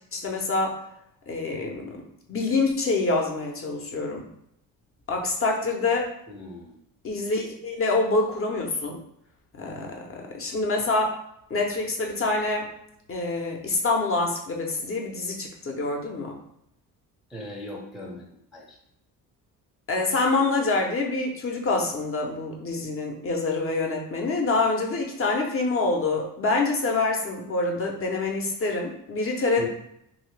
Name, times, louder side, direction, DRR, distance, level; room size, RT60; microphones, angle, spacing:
voice 1, 0.1-0.8 1.3-2.0 2.3-4.2 5.1-6.1 7.0-9.0 9.6-11.2 11.5-12.7 13.1-16.4 19.9-29.7, left 3 dB, 35° left, 1 dB, 0.7 m, -26 dB
voice 2, 6.3-6.8 17.3-18.2 18.5-18.8 29.6-29.7, equal, ahead, -3 dB, 0.5 m, -38 dB
2.8 x 2.7 x 3.2 m, 0.75 s
cardioid pair, 110°, 37 cm